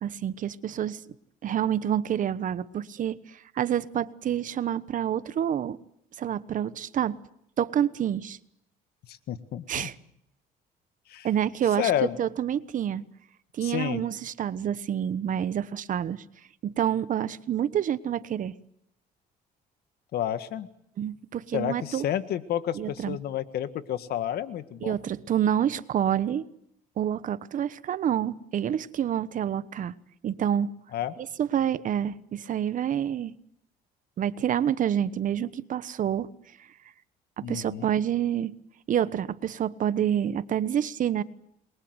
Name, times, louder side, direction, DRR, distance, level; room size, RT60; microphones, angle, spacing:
voice 1, 0.0-1.0 1.4-5.8 6.2-7.2 7.6-8.4 9.7-9.9 11.2-11.9 12.2-13.0 13.5-16.2 16.6-18.5 21.0-22.0 22.7-23.2 24.8-26.5 27.0-29.9 30.2-30.7 31.2-33.3 34.2-36.3 37.4-38.5 38.9-41.2, right 10 dB, 50° right, 1.2 m, -28 dB
voice 2, 9.1-9.9 11.1-11.3 11.8-12.2 13.6-14.0 20.1-20.7 21.5-25.0 30.9-31.1 37.4-37.9, left 11 dB, 70° left, 1.8 m, -30 dB
28.0 x 23.0 x 8.0 m
cardioid pair, 110°, 17 cm